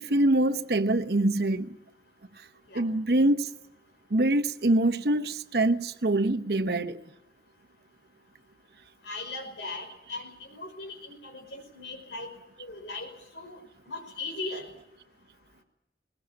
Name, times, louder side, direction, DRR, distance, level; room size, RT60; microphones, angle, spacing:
voice 1, 0.0-1.8 2.4-2.5 2.7-3.5 4.1-7.0, right 1 dB, 65° right, 1.0 m, -24 dB
voice 2, 9.1-12.3 12.6-13.6 13.9-14.6, left 2 dB, 85° left, 5.4 m, -38 dB
20.5 x 20.5 x 8.7 m
head